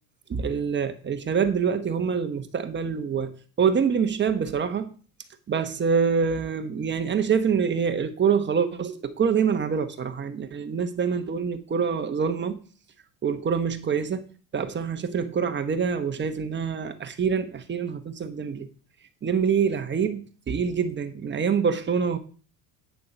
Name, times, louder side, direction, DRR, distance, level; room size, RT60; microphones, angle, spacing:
voice 1, 0.3-4.9 5.5-12.6 13.2-14.3 14.5-18.7 19.2-20.2 20.5-22.2, right 6 dB, 25° right, 1.2 m, -25 dB
9.5 x 6.8 x 5.2 m
supercardioid pair, 120°, 43 cm